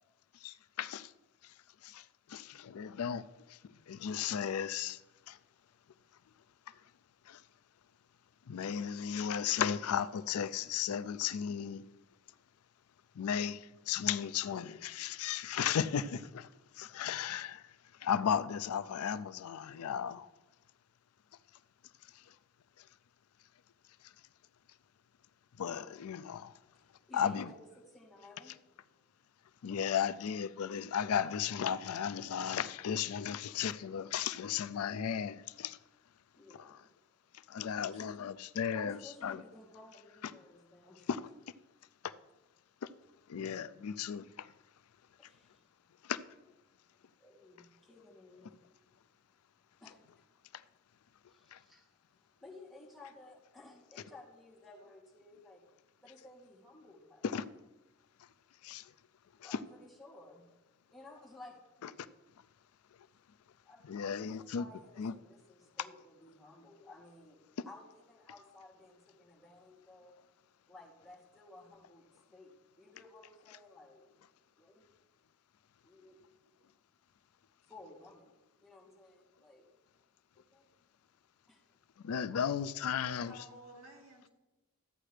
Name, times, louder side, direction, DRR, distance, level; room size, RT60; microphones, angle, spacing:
voice 1, 0.4-1.1 1.4-1.5 1.8-3.2 3.5-5.0 5.3-5.4 7.3-7.4 8.5-11.8 13.2-16.5 16.7-17.6 18.0-20.3 22.1-22.2 25.6-26.5 27.1-27.5 29.6-35.8 37.5-39.4 41.1-41.2 42.0-42.1 42.8-42.9 43.3-44.5 46.0-46.2 50.5-50.6 51.5-51.6 57.2-57.4 58.6-58.9 59.5-59.6 61.8-61.9 63.8-64.6 65.0-65.1 82.0-83.3, left 8 dB, 80° left, 0.4 m, -35 dB
voice 2, 26.7-27.6 27.9-28.5 36.3-36.9 37.7-38.2 38.7-41.1 45.2-45.9 47.1-48.7 49.3-50.5 51.2-55.6 56.0-57.3 59.3-60.5 60.9-61.6 63.6-67.4 67.7-70.2 70.7-72.0 72.3-74.1 74.6-74.8 75.8-76.2 77.7-78.3 78.6-79.7 80.3-80.6 81.5-81.6, left 2 dB, ahead, 2.6 m, -56 dB
voice 3, 82.9-84.3, equal, 70° right, 2.3 m, -53 dB
13.0 x 8.7 x 3.3 m
head